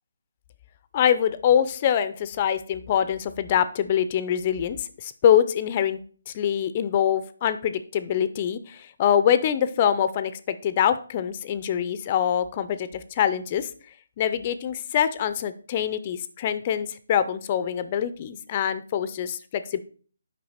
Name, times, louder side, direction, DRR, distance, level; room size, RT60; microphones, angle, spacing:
voice 1, 0.9-6.0 6.3-13.7 14.2-19.8, left 9 dB, 30° left, 13 dB, 0.5 m, -24 dB
8.5 x 5.4 x 4.3 m, 0.43 s
figure-of-eight pair, 150°, 0 cm